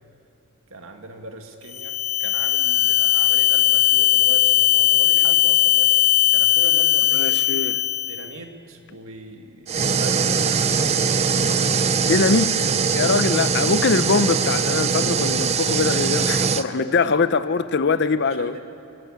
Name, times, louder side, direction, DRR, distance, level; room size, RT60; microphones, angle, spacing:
voice 1, 0.7-7.7 8.1-11.3 12.9-13.2 16.7-17.2 18.0-18.6, right 2 dB, 70° right, 2.0 m, -39 dB
sound 1, 1.7-8.3, left 13 dB, 30° left, 1.2 m, -18 dB
voice 2, 7.1-7.8 12.0-18.6, left 4 dB, 55° left, 0.6 m, -22 dB
sound 2, 9.7-16.6, right 5 dB, 30° right, 0.6 m, -21 dB
23.0 x 16.5 x 8.8 m
head